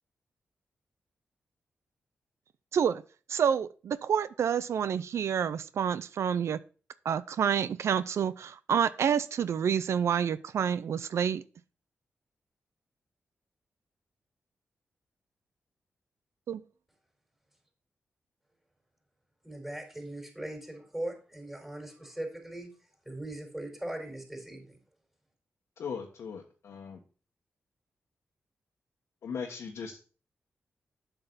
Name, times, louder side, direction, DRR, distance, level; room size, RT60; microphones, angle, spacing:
voice 1, 3.3-6.6 7.0-11.4 16.5-16.6, right 8 dB, 75° right, 15 dB, 0.5 m, -28 dB
voice 2, 19.4-22.7 23.0-24.8, right 1 dB, 5° right, 2 dB, 4.2 m, -39 dB
voice 3, 25.8-27.0 29.2-30.0, left 6 dB, 75° left, 0 dB, 1.3 m, -39 dB
7.6 x 6.8 x 4.0 m, 0.37 s
cardioid pair, 65°, 5 cm